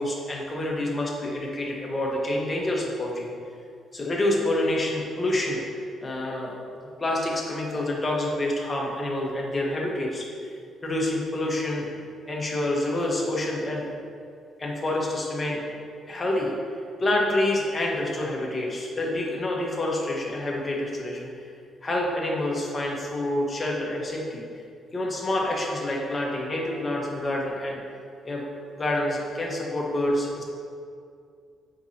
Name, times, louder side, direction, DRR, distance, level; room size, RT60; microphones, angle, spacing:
voice 1, 0.0-3.3 3.9-5.6 6.0-6.5 7.0-10.5 10.8-11.9 12.3-13.9 14.6-15.6 16.1-16.5 17.0-21.3 21.8-24.4 24.9-27.8 28.2-28.4 28.7-30.4, left 1 dB, 25° left, -2 dB, 1.4 m, -27 dB
8.0 x 5.6 x 2.9 m, 2.3 s
cardioid pair, 90°, 0 cm